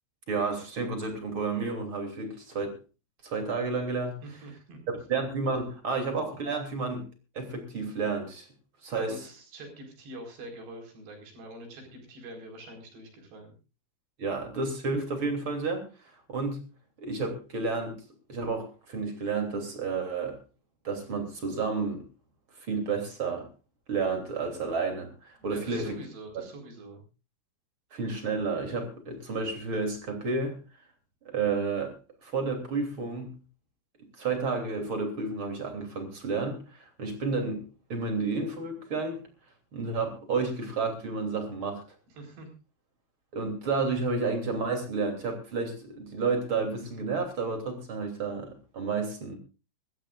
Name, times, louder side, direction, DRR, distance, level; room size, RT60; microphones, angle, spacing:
voice 1, 0.3-2.8 3.2-4.1 4.9-7.0 7.3-8.5 8.8-9.1 14.2-15.9 16.3-16.6 17.0-18.0 18.3-20.4 20.8-22.0 22.7-23.5 23.9-26.0 26.3-26.4 27.9-30.6 31.2-31.9 32.2-33.3 34.2-37.6 37.9-39.2 39.7-41.8 43.3-49.4, right 4 dB, 35° right, 4 dB, 3.2 m, -31 dB
voice 2, 4.2-4.8 9.0-13.5 25.4-27.0 42.2-42.5, right 1 dB, 70° right, 2 dB, 6.6 m, -45 dB
25.0 x 14.0 x 2.5 m, 0.32 s
omnidirectional pair, 5.0 m